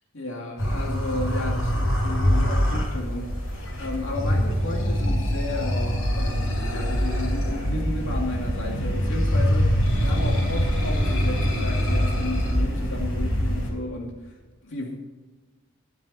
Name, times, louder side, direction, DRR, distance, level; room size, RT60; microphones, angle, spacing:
voice 1, 0.1-3.3 3.8-9.8 10.0-14.4 14.6-15.0, left 2 dB, 65° left, -1 dB, 2.4 m, -33 dB
sound 1, 0.6-13.7, equal, 80° left, 4.4 m, -24 dB
20.0 x 7.3 x 4.2 m, 1.3 s
head